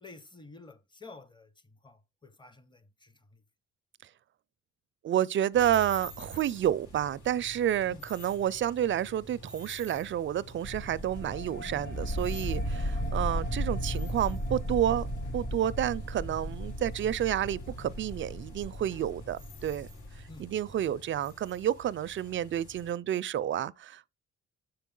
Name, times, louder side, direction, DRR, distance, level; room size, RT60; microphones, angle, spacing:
voice 1, 0.0-3.4 7.9-8.0 13.0-13.2 20.3-20.5, left 3 dB, 15° left, 0.8 m, -51 dB
voice 2, 5.0-15.1 15.3-19.9 20.4-24.1, right 11 dB, 40° right, 0.4 m, -30 dB
sound 1, 5.5-22.9, left 1 dB, 80° left, 3.2 m, -49 dB
sound 2, 10.6-20.8, equal, 35° left, 3.3 m, -35 dB
6.7 x 4.6 x 3.8 m
cardioid pair, 90°, 30 cm